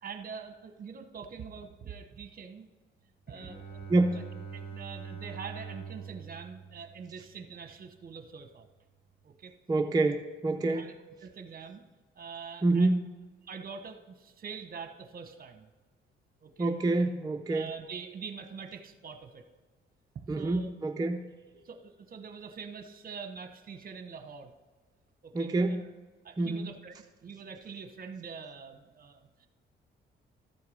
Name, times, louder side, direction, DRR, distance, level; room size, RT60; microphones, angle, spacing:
voice 1, 0.0-2.7 3.3-4.2 4.5-8.7 9.2-9.5 10.6-10.9 11.2-11.8 12.2-12.9 13.5-15.7 16.4-16.7 17.5-19.4 20.1-20.7 21.6-24.5 25.2-25.9 26.2-27.0 27.2-29.5, right 6 dB, 45° right, 7 dB, 1.0 m, -44 dB
Bowed string instrument, 3.3-7.8, right 6 dB, 45° left, 1.7 m, -44 dB
voice 2, 3.9-4.2 9.7-10.9 12.6-13.1 16.6-17.7 20.3-21.3 25.3-25.8 26.4-26.7, right 2 dB, 20° right, 3 dB, 0.5 m, -27 dB
13.0 x 4.6 x 5.0 m, 1.3 s
cardioid pair, 90°, 20 cm